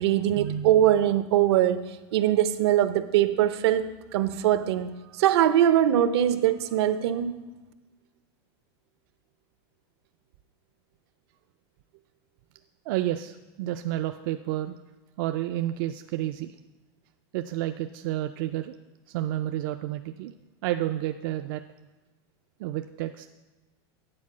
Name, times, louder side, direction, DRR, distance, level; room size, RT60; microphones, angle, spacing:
voice 1, 0.0-7.3, right 11 dB, 75° right, 11 dB, 0.7 m, -22 dB
voice 2, 12.9-14.8 15.2-16.5 17.3-18.7 19.1-20.3 20.6-21.6 22.6-23.3, right 14 dB, 50° right, 7 dB, 0.4 m, -30 dB
9.6 x 4.8 x 7.3 m, 1.2 s
supercardioid pair, 165°, 14 cm